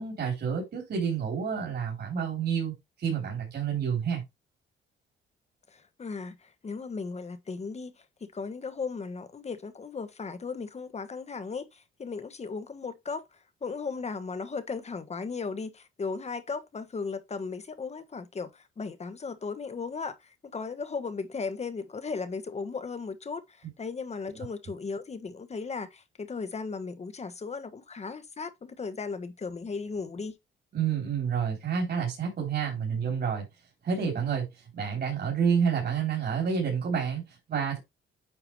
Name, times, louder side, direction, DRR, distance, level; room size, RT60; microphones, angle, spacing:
voice 1, 0.0-4.2 30.7-33.5 33.8-37.8, right 7 dB, 55° right, 3.6 m, -29 dB
voice 2, 5.7-30.3, left 4 dB, 35° left, 1.3 m, -36 dB
9.1 x 4.6 x 3.3 m
cardioid pair, 90°, 20 cm